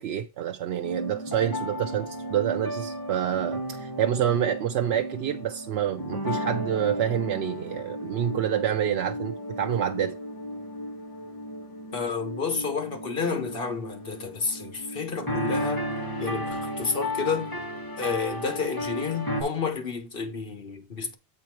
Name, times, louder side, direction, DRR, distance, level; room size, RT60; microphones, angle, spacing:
voice 1, 0.0-10.1, right 10 dB, 85° right, 0.8 m, -27 dB
sound 1, 0.8-19.4, equal, 20° left, 1.8 m, -34 dB
voice 2, 11.9-15.9 16.2-17.5 18.0-21.1, left 5 dB, 60° left, 1.6 m, -30 dB
8.3 x 4.3 x 4.5 m
omnidirectional pair, 1.0 m